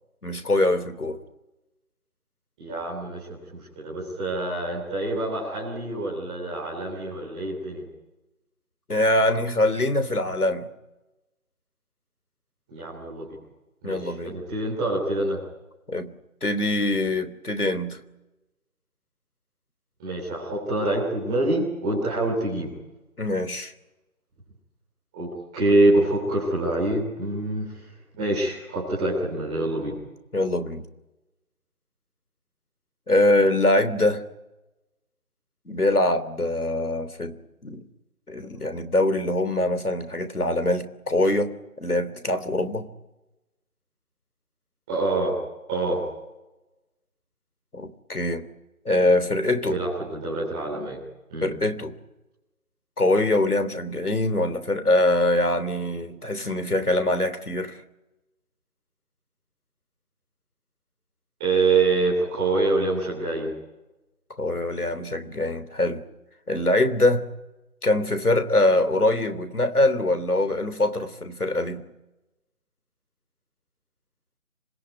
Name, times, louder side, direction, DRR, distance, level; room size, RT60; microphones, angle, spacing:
voice 1, 0.2-1.2 8.9-10.7 13.8-14.4 15.9-16.1 16.4-18.0 23.2-23.7 30.3-30.8 33.1-34.2 35.7-37.8 38.3-42.9 47.7-48.4 48.8-49.8 51.4-51.9 53.0-57.8 64.4-66.0 66.5-67.3 67.8-71.8, left 1 dB, 85° left, 11 dB, 3.4 m, -23 dB
voice 2, 2.6-7.8 12.7-13.2 13.8-15.4 20.0-22.7 25.1-25.3 25.5-27.6 28.2-30.0 44.9-45.3 45.7-46.0 49.6-51.0 51.3-51.5 61.4-63.5, right 2 dB, 5° right, -8 dB, 3.4 m, -25 dB
26.0 x 21.5 x 9.8 m, 1.0 s
figure-of-eight pair, 175°, 44 cm